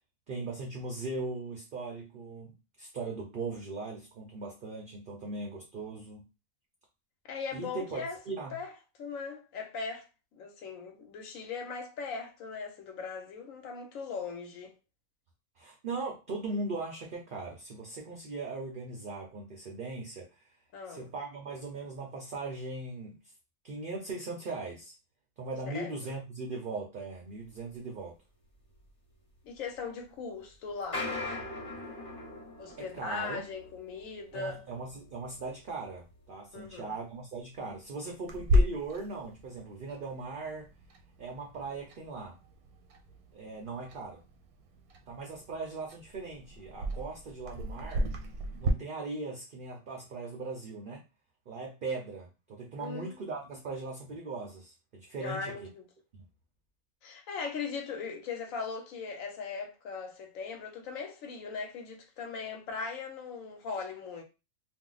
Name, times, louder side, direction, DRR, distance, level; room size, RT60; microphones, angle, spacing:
voice 1, 0.3-6.2 7.5-8.5 15.6-20.4 20.9-23.2 23.6-24.9 25.4-28.1 32.8-33.5 34.3-40.7 41.2-42.4 43.3-44.2 45.1-48.1 48.6-51.0 51.5-55.7 56.1-56.2, right 3 dB, 55° right, 0.6 m, -39 dB
voice 2, 7.3-8.2 8.5-8.7 9.0-10.1 10.3-14.7 20.7-21.1 25.7-25.9 29.4-31.1 32.6-34.6 36.5-37.0 52.8-53.3 55.2-55.8 57.0-64.2, left 5 dB, 65° left, 1.1 m, -39 dB
sound 1, 27.4-27.6 27.9-28.0 28.7-28.8 29.5-29.8 30.7-37.1 37.6-37.8 38.1-38.2 38.7-38.8 39.3-39.4, left 2 dB, 30° left, 1.2 m, -42 dB
Clock, 38.3-48.7, left 1 dB, 85° right, 1.1 m, -34 dB
2.7 x 2.0 x 3.8 m
omnidirectional pair, 1.5 m